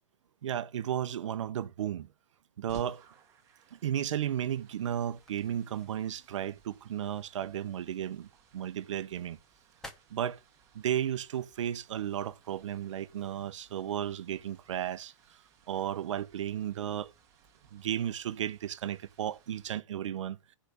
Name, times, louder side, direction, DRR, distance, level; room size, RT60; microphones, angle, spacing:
voice 1, 0.4-2.1 2.6-3.0 3.7-8.3 8.5-9.4 10.1-10.4 10.7-15.1 15.7-17.1 17.7-20.4, right 10 dB, 70° right, 0.9 m, -34 dB
sound 1, 2.7-14.6, left 1 dB, 5° left, 0.8 m, -60 dB
sound 2, 2.7-19.7, right 6 dB, 15° right, 1.5 m, -61 dB
8.6 x 5.0 x 6.7 m
hypercardioid pair, 170°, 16 cm